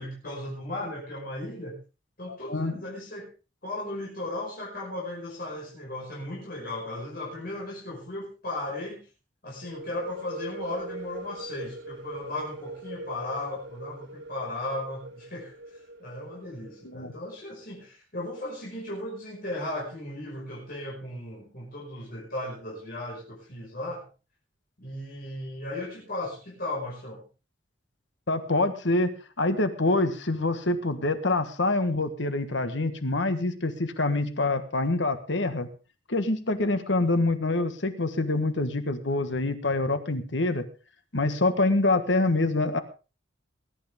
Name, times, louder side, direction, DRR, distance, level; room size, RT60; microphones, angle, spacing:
voice 1, 0.0-1.8 2.2-3.3 3.6-9.0 9.4-15.5 16.0-24.0 24.8-27.2, left 1 dB, 55° left, -4 dB, 5.6 m, -36 dB
voice 2, 2.3-2.7 16.8-17.1 28.3-35.7 36.1-40.6 41.1-42.8, left 2 dB, 70° left, 9 dB, 1.5 m, -26 dB
sound 1, 9.6-17.2, right 1 dB, 65° right, 3.2 m, -42 dB
20.5 x 11.5 x 3.6 m, 0.32 s
head